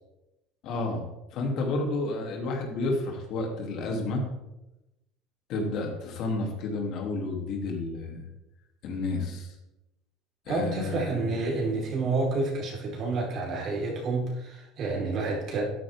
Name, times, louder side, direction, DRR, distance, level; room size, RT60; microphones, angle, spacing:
voice 1, 0.6-1.1 1.3-4.2 5.5-8.2 8.8-9.5 10.5-11.4, left 2 dB, 55° left, 1 dB, 3.1 m, -31 dB
voice 2, 10.5-15.6, right 3 dB, 50° right, -1 dB, 4.5 m, -29 dB
12.5 x 9.9 x 3.7 m, 0.95 s
supercardioid pair, 115°, 0 cm